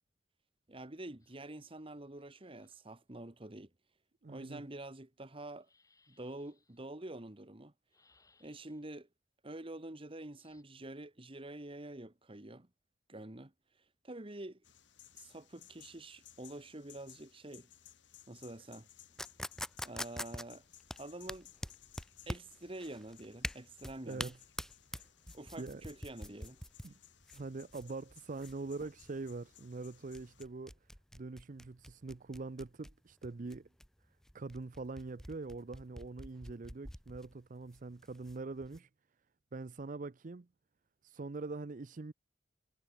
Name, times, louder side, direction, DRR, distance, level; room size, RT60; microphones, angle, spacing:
voice 1, 0.7-3.7 4.3-5.7 6.1-7.7 8.4-9.1 9.4-12.7 13.1-13.5 14.0-14.6 15.1-17.7 18.3-18.9 19.8-20.6 21.0-21.5 22.3-24.3 25.3-26.6, right 1 dB, 30° right, 1.5 m, -47 dB
sound 1, 1.2-2.9 5.5-6.8 7.9-9.0 10.4-10.6, left 4 dB, 20° left, 5.2 m, -72 dB
voice 2, 4.2-4.6 24.0-24.4 24.9-25.1 25.6-25.8 26.8-26.9 27.3-30.7 31.1-33.7 34.3-38.9 39.5-40.5 41.0-42.1, right 3 dB, 45° right, 0.5 m, -43 dB
sound 2, 14.6-30.4, left 11 dB, 70° left, 1.9 m, -61 dB
sound 3, 19.2-38.8, equal, 5° left, 1.5 m, -46 dB
head